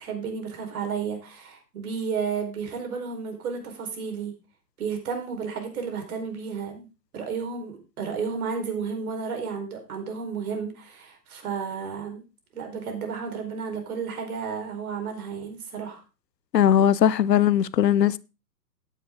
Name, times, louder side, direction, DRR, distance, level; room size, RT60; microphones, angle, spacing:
voice 1, 0.0-4.3 4.8-6.9 7.1-12.2 12.5-16.0, right 6 dB, 60° right, 4.7 m, -32 dB
voice 2, 16.5-18.2, left 10 dB, 75° left, 0.9 m, -19 dB
13.5 x 10.0 x 3.8 m
hypercardioid pair, 125°, 50 cm